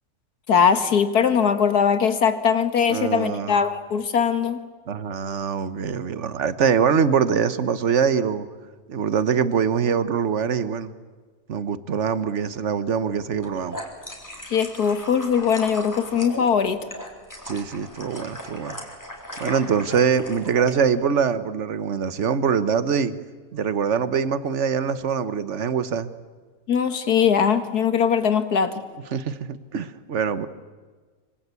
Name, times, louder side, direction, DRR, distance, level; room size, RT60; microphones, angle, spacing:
voice 1, 0.5-4.6 14.5-16.8 26.7-28.7, left 7 dB, 85° left, 10 dB, 2.1 m, -21 dB
voice 2, 2.9-3.6 4.9-8.5 8.9-10.9 11.5-13.8 17.4-18.8 19.4-23.1 23.5-26.1 29.1-30.5, right 6 dB, 50° right, 13 dB, 1.4 m, -23 dB
sound 1, 13.3-20.7, equal, 10° left, 3.9 m, -37 dB
25.5 x 25.0 x 8.4 m, 1.4 s
omnidirectional pair, 1.6 m